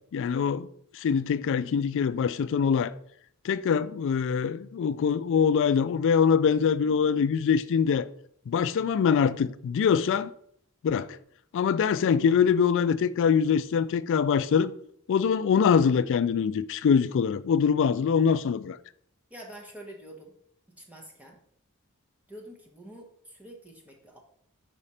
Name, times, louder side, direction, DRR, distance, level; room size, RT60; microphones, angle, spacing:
voice 1, 0.1-0.7 0.9-2.9 3.4-8.1 8.5-10.3 10.8-11.2 11.5-14.7 15.1-18.8, left 6 dB, 60° left, 0.3 m, -24 dB
voice 2, 19.3-20.3 20.8-21.4 22.3-24.2, right 1 dB, 5° right, 0.9 m, -46 dB
5.0 x 4.9 x 4.2 m
head